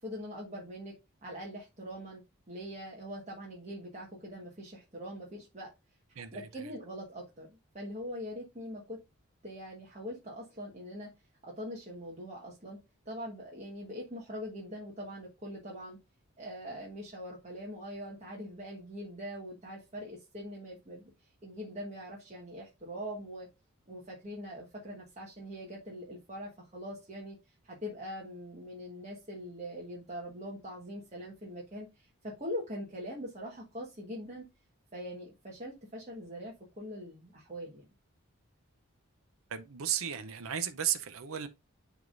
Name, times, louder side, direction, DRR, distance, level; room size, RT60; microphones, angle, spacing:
voice 1, 0.0-0.9 1.2-5.7 6.3-9.0 9.4-11.1 11.4-12.8 13.0-16.0 16.4-23.5 23.9-27.4 27.6-34.5 34.9-37.9, equal, 30° right, 1.3 m, -42 dB
voice 2, 39.5-41.5, right 10 dB, 70° right, 0.6 m, -34 dB
11.0 x 3.6 x 2.5 m
head